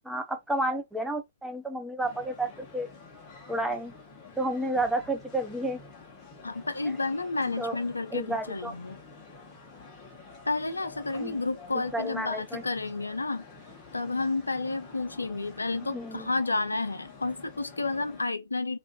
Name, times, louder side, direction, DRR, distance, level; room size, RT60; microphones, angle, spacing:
voice 1, 0.0-2.9 3.5-3.9 4.4-5.8 7.6-7.8 8.1-8.7 11.2-11.4 11.9-12.6 15.9-16.3, right 1 dB, 5° right, 0.4 m, -31 dB
sound 1, 2.0-18.2, left 4 dB, 25° left, 0.9 m, -49 dB
voice 2, 6.4-9.0 10.5-13.5 13.9-18.8, left 3 dB, 85° left, 0.4 m, -31 dB
2.5 x 2.4 x 2.3 m
figure-of-eight pair, 120°, 0 cm